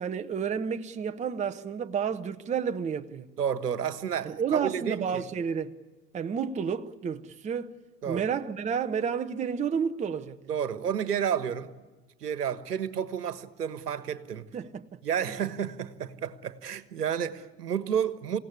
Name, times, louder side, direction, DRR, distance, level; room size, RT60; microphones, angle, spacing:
voice 1, 0.0-3.3 4.2-5.7 6.1-7.7 8.1-10.4 14.5-14.8, right 7 dB, 15° right, 0.8 m, -30 dB
voice 2, 3.4-5.2 8.0-8.2 10.5-11.7 12.2-14.5 15.0-18.4, right 8 dB, 70° right, 1.5 m, -31 dB
28.0 x 17.0 x 9.7 m
figure-of-eight pair, 85°, 48 cm